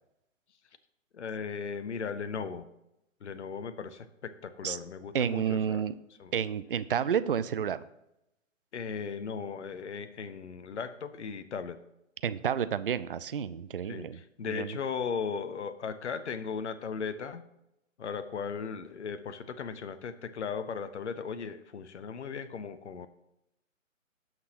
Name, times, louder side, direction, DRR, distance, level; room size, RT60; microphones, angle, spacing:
voice 1, 1.1-2.7 3.2-5.9 6.2-6.3 8.7-11.8 13.8-17.4 18.0-23.1, left 6 dB, 60° left, 11 dB, 0.8 m, -37 dB
voice 2, 5.1-5.9 6.3-7.8 12.2-14.2 14.5-14.8, right 8 dB, 45° right, 15 dB, 0.4 m, -30 dB
16.5 x 6.0 x 2.9 m, 0.86 s
figure-of-eight pair, 135°, 40 cm